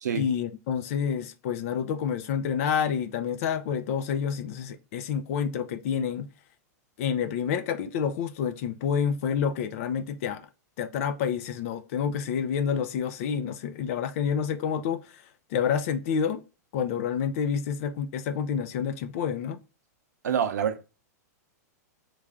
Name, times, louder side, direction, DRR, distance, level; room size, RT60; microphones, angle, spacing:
voice 1, 0.1-6.3 7.0-10.4 10.8-15.2 15.5-16.4 16.7-19.6, left 7 dB, 55° left, 0.5 m, -28 dB
voice 2, 20.2-20.9, right 8 dB, 85° right, 0.6 m, -26 dB
3.2 x 2.5 x 3.5 m
hypercardioid pair, 130°, 9 cm